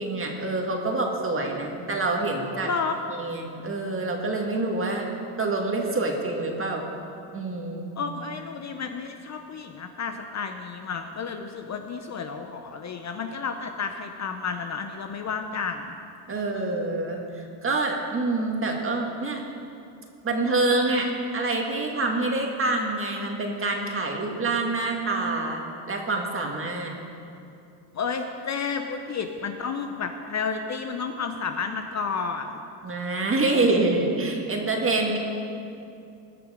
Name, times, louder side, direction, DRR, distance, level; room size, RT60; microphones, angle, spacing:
voice 1, 0.0-2.7 3.2-5.1 5.4-6.8 7.3-7.9 16.3-17.2 17.6-19.4 20.2-25.6 25.9-26.9 32.8-35.2, right 2 dB, 25° right, 1 dB, 2.0 m, -26 dB
voice 2, 2.6-3.0 8.0-15.9 16.3-16.9 27.9-32.6, left 5 dB, 35° left, 6 dB, 0.7 m, -31 dB
19.5 x 6.5 x 5.1 m, 2.6 s
supercardioid pair, 100°, 49 cm